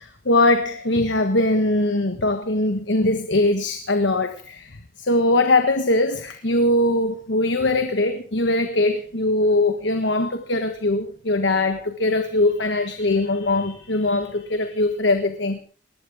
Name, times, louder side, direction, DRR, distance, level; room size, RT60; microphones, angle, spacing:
voice 1, 0.0-15.6, left 2 dB, 75° left, 7 dB, 1.5 m, -21 dB
20.5 x 19.5 x 3.6 m, 0.39 s
head